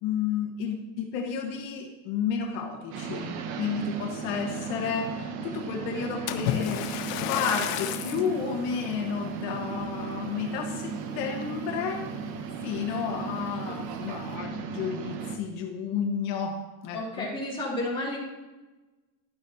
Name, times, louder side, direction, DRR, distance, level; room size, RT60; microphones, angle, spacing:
voice 1, 0.0-6.8 7.3-12.1 12.6-16.6 16.8-17.3, left 7 dB, 65° left, 1 dB, 1.4 m, -31 dB
sound 1, 2.9-15.4, right 5 dB, 60° right, 1.0 m, -36 dB
Splash splatter, 6.3-8.3 9.0-9.2 9.8-9.9, left 11 dB, 85° left, 0.8 m, -31 dB
voice 2, 16.9-18.2, left 1 dB, 10° left, -6 dB, 2.5 m, -31 dB
11.5 x 9.0 x 2.8 m, 1.1 s
cardioid pair, 155°, 46 cm